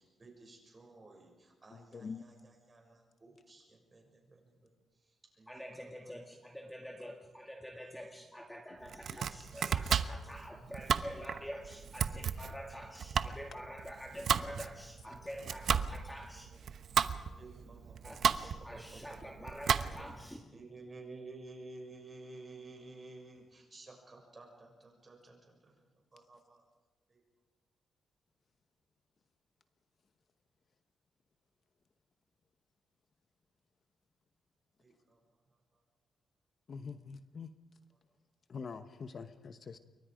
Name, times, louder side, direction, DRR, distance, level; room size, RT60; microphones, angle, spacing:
voice 1, 0.0-6.3 7.0-7.1 7.7-8.6 9.0-9.1 10.3-10.4 14.1-14.2 16.5-16.6 17.3-20.2 20.5-26.6 27.1-27.2 34.8-35.8, right 2 dB, 25° right, 1 dB, 6.7 m, -54 dB
voice 2, 1.7-2.2 8.7-8.8 9.1-9.2 17.0-17.2 36.7-37.5 38.5-39.8, left 5 dB, 45° left, 10 dB, 1.0 m, -45 dB
voice 3, 5.5-16.5 18.0-20.4, equal, 5° left, 1 dB, 2.1 m, -47 dB
Domestic sounds home sounds, 8.8-20.2, right 7 dB, 65° right, 0.9 m, -34 dB
28.0 x 23.5 x 5.1 m, 1.2 s
cardioid pair, 130°, 0 cm